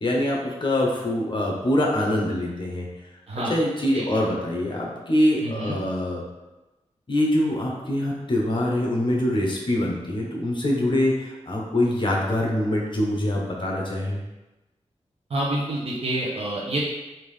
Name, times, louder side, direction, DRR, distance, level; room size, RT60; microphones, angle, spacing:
voice 1, 0.0-2.9 3.5-6.2 7.1-14.2, left 1 dB, 40° left, -2 dB, 0.8 m, -24 dB
voice 2, 5.4-5.8 15.3-16.8, right 1 dB, 55° right, -5 dB, 0.8 m, -27 dB
3.6 x 2.7 x 3.2 m, 1.1 s
wide cardioid pair, 105°, 12 cm